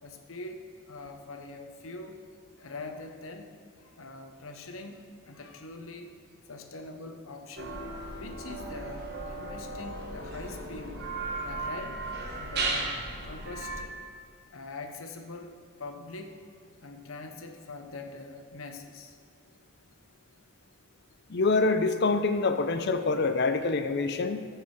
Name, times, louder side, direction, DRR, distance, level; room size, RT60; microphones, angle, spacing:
voice 1, 0.0-2.2 2.6-6.1 6.4-7.8 8.2-11.1 11.4-12.0 12.3-13.9 14.5-16.4 16.8-19.2, left 3 dB, 80° left, 5 dB, 1.0 m, -43 dB
sound 1, 7.6-13.8, right 2 dB, 50° right, 1.3 m, -35 dB
voice 2, 21.3-24.5, left 3 dB, 55° left, 9 dB, 0.6 m, -26 dB
14.0 x 4.9 x 4.8 m, 2.3 s
head